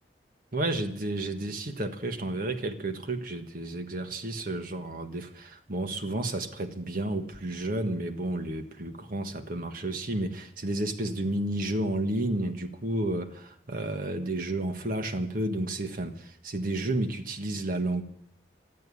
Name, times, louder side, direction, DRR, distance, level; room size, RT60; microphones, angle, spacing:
voice 1, 0.5-18.0, right 1 dB, 50° right, 1.4 m, -31 dB
13.5 x 11.0 x 8.5 m
head